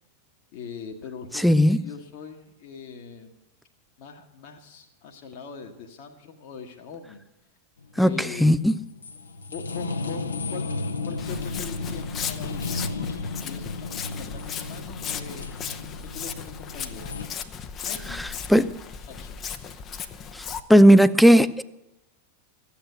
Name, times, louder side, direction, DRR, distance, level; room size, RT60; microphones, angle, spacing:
voice 1, 0.5-3.4 4.0-7.2 7.9-8.6 9.5-10.7 11.0-12.9 13.4-15.5 16.1-17.1 17.8-18.7 19.1-19.4, left 5 dB, 45° left, 1.3 m, -41 dB
voice 2, 1.4-1.8 8.0-8.7 18.2-18.8 20.3-20.4 20.7-21.6, equal, ahead, 0.5 m, -17 dB
sound 1, 7.8-17.3, left 3 dB, 75° left, 0.9 m, -34 dB
Walk footsteps, 11.2-20.6, left 7 dB, 25° left, 0.8 m, -36 dB
14.5 x 8.7 x 8.0 m
figure-of-eight pair, 90°, 0 cm